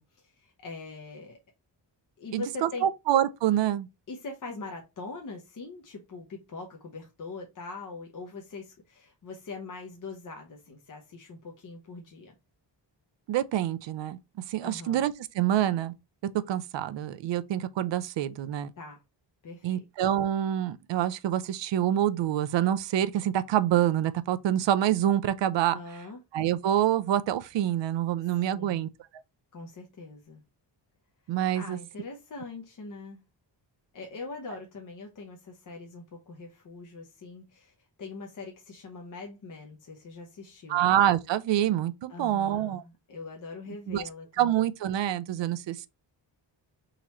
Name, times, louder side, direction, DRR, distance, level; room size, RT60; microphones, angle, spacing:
voice 1, 0.0-1.4 2.2-2.9 4.1-12.3 14.6-15.0 18.8-19.0 19.4-19.8 25.7-26.2 28.5-28.9 29.5-30.4 31.5-33.2 33.9-37.7 38.0-40.8 42.1-44.3, left 3 dB, 45° left, 0.9 m, -42 dB
voice 2, 2.3-3.9 13.3-14.2 14.5-15.9 16.3-18.7 19.6-25.8 26.3-28.9 31.3-31.8 40.7-42.8 43.9-44.0 44.4-45.9, right 11 dB, 75° right, 0.6 m, -26 dB
3.8 x 3.0 x 4.2 m
wide cardioid pair, 130°, 45 cm